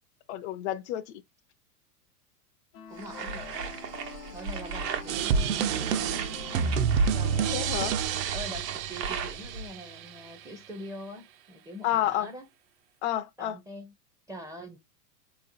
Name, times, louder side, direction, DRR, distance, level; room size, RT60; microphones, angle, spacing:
voice 1, 0.3-1.0 7.5-7.9 11.8-12.3 13.0-13.6, left 12 dB, 45° left, 0.5 m, -29 dB
sound 1, 2.7-7.9, left 4 dB, 75° left, 0.9 m, -45 dB
voice 2, 2.9-3.7 4.3-6.3 7.1-7.8 8.3-12.5 13.4-13.9 14.3-14.8, equal, 5° right, 0.5 m, -43 dB
sound 2, 3.0-9.7, right 5 dB, 85° right, 1.2 m, -38 dB
sound 3, 5.1-10.0, right 6 dB, 55° right, 0.6 m, -28 dB
4.4 x 3.0 x 2.5 m
hypercardioid pair, 115°, 48 cm